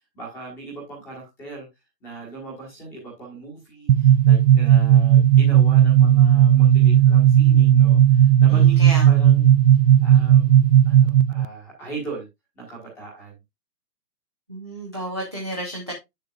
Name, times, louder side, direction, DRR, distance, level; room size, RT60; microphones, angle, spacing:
voice 1, 0.1-1.7 2.0-9.5 10.0-12.3 12.5-13.4, right 3 dB, 5° left, 1.4 m, -38 dB
sound 1, 3.9-11.4, right 10 dB, 90° right, 0.6 m, -15 dB
voice 2, 8.5-9.1 14.5-15.9, right 1 dB, 15° right, 0.6 m, -31 dB
8.6 x 6.6 x 2.3 m
hypercardioid pair, 175°, 49 cm